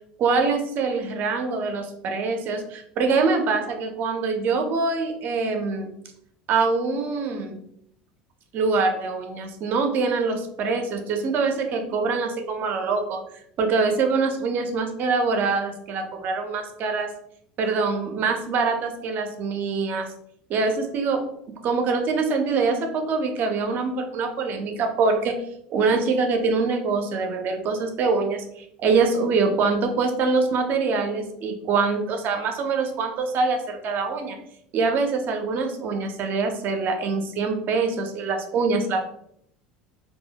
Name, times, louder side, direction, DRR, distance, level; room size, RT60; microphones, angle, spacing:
voice 1, 0.2-5.9 6.5-7.6 8.5-13.2 13.6-17.1 17.6-20.1 20.5-25.4 25.7-34.4 34.7-39.1, right 4 dB, 50° right, 5 dB, 0.5 m, -24 dB
2.2 x 2.0 x 2.7 m, 0.72 s
hypercardioid pair, 85°, 4 cm